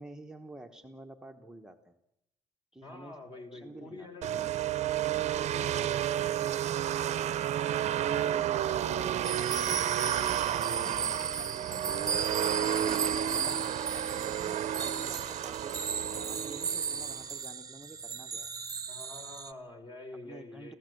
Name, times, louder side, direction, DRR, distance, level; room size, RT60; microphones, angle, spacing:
voice 1, 0.0-1.9 2.7-3.2 3.5-4.1 10.4-12.3 13.3-18.5 20.2-20.7, right 1 dB, 5° right, 3 dB, 1.0 m, -50 dB
voice 2, 2.8-4.5 5.4-7.4 8.1-9.4 10.6-10.9 13.4-13.6 18.9-20.8, left 2 dB, 35° left, 5 dB, 3.9 m, -48 dB
sound 1, 4.2-17.3, right 11 dB, 55° right, 0.8 m, -31 dB
Hiss, 9.0-9.1 9.4-9.6 10.0-12.6, left 3 dB, 55° left, 3.5 m, -59 dB
sound 2, 9.2-19.5, right 6 dB, 25° right, 0.9 m, -35 dB
25.5 x 15.5 x 7.8 m, 0.85 s
cardioid pair, 130°, 13 cm